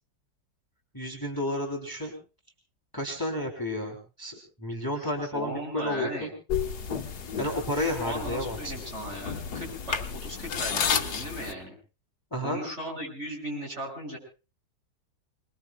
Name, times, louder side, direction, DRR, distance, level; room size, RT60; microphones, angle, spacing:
voice 1, 0.9-2.1 2.9-6.3 7.4-8.7 12.3-12.6, left 1 dB, 10° left, 1 dB, 3.2 m, -31 dB
voice 2, 5.0-6.3 7.8-11.7 12.4-14.2, right 1 dB, 40° right, -1 dB, 7.8 m, -37 dB
sound 1, 6.5-11.5, left 7 dB, 65° left, 1.7 m, -32 dB
28.5 x 21.5 x 2.3 m, 0.34 s
omnidirectional pair, 1.9 m